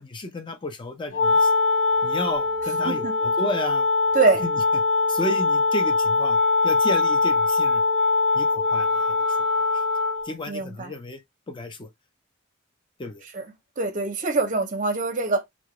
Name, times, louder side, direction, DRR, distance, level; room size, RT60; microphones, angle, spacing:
voice 1, 0.0-1.5 2.0-3.9 5.1-6.4 6.6-7.8 8.3-8.9 10.3-11.2 11.5-11.9 13.0-13.2, left 1 dB, 25° left, 0.5 m, -32 dB
Wind instrument woodwind instrument, 1.1-10.3, left 3 dB, 65° left, 0.9 m, -22 dB
voice 2, 2.8-3.2 4.1-4.4 10.5-10.9 13.3-13.5 13.8-15.4, right 3 dB, 40° right, 0.6 m, -24 dB
2.3 x 2.2 x 2.8 m
head